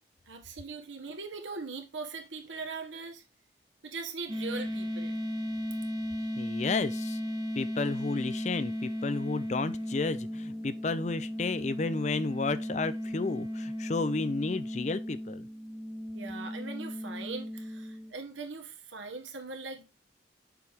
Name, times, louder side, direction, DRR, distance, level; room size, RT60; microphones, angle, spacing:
voice 1, 0.3-3.2 3.8-5.1 6.2-6.3 16.1-19.8, right 4 dB, 85° right, 1.4 m, -40 dB
sound 1, 4.3-18.1, equal, 20° right, 0.9 m, -36 dB
voice 2, 6.4-7.2 7.6-15.5, left 3 dB, 40° left, 0.4 m, -32 dB
6.8 x 4.8 x 3.5 m
head